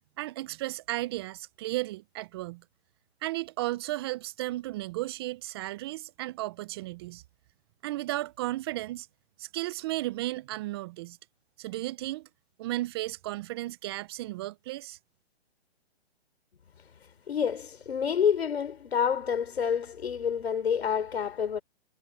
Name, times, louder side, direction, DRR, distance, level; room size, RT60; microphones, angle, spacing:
voice 1, 0.2-2.6 3.2-7.2 7.8-9.1 9.4-11.2 11.6-12.3 12.6-15.0, right 17 dB, 25° right, 0.6 m, -34 dB
voice 2, 17.3-21.6, left 7 dB, 70° left, 4.0 m, -28 dB
hypercardioid pair, 140°, 32 cm